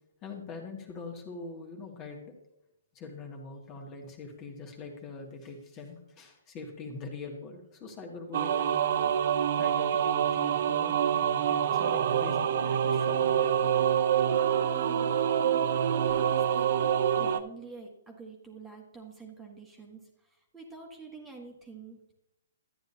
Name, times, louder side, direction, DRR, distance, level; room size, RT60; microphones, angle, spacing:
voice 1, 0.2-2.3 3.0-9.1 9.6-13.7, left 4 dB, 25° left, 2 dB, 1.9 m, -43 dB
sound 1, 8.3-17.4, right 9 dB, 55° right, 0.6 m, -26 dB
voice 2, 14.6-22.1, right 4 dB, 15° right, 1 dB, 1.6 m, -47 dB
12.0 x 9.5 x 2.8 m, 0.83 s
hypercardioid pair, 135°, 0 cm